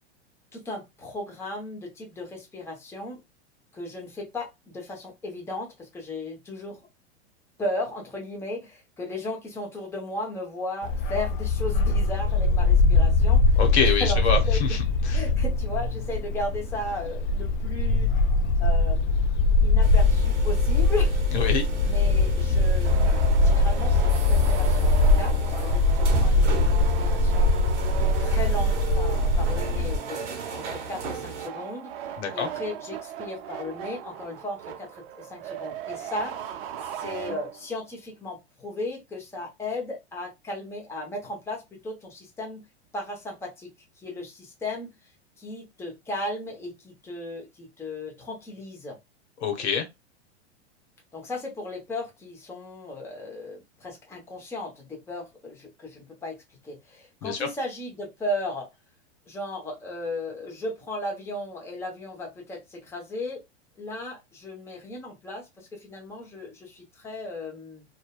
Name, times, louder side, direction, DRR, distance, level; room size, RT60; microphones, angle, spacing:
voice 1, 0.5-3.2 3.7-6.8 7.6-14.8 15.1-18.1 18.6-19.3 19.6-21.2 21.9-27.5 28.2-30.2 30.5-31.9 32.3-36.3 36.9-42.6 42.9-43.7 44.0-44.9 45.4-49.0 51.1-56.4 56.6-58.7 59.3-63.4 63.8-67.8, left 1 dB, 10° left, 0.7 m, -35 dB
Bark, 10.8-30.0, left 2 dB, 50° left, 0.4 m, -22 dB
voice 2, 13.6-15.2 21.3-21.7 32.2-32.5 49.4-49.8 57.2-57.5, left 6 dB, 75° left, 0.9 m, -26 dB
sound 1, 19.8-31.5, right 5 dB, 90° right, 0.8 m, -36 dB
sound 2, 22.8-37.8, right 10 dB, 55° right, 0.6 m, -38 dB
2.6 x 2.2 x 2.2 m
hypercardioid pair, 120°, 34 cm